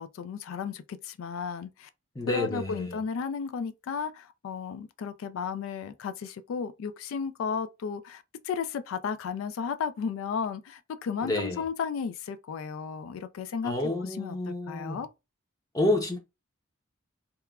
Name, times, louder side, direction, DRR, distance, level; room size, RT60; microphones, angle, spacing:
voice 1, 0.0-1.9 2.3-13.7 14.0-15.1, left 6 dB, 80° left, 0.3 m, -34 dB
voice 2, 2.1-3.0 11.2-11.6 13.6-15.0 15.7-16.2, left 1 dB, 15° left, 0.5 m, -29 dB
2.9 x 2.2 x 2.2 m
head